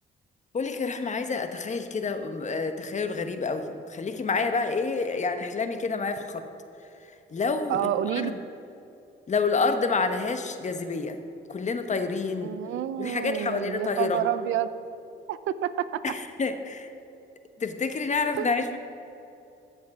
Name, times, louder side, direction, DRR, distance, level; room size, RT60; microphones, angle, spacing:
voice 1, 0.5-6.4 7.3-8.3 9.3-11.2 11.5-12.5 13.0-14.2 16.0-16.9 17.6-18.8, left 4 dB, 35° left, 8 dB, 1.1 m, -28 dB
voice 2, 7.7-8.3 12.4-14.7 15.3-16.0 18.4-18.5, right 11 dB, 80° right, 15 dB, 0.5 m, -29 dB
14.5 x 7.5 x 6.0 m, 2.8 s
cardioid pair, 90°, 20 cm